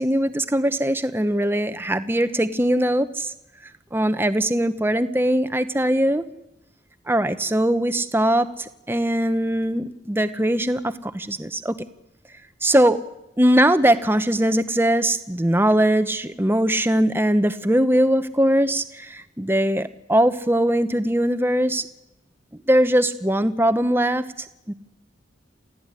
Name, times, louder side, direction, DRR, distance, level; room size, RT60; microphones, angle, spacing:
voice 1, 0.0-3.3 3.9-6.2 7.1-11.8 12.6-13.0 13.4-21.9 22.7-24.2 24.7-24.8, right 1 dB, 10° right, 11 dB, 1.0 m, -21 dB
28.0 x 15.5 x 9.9 m, 0.89 s
head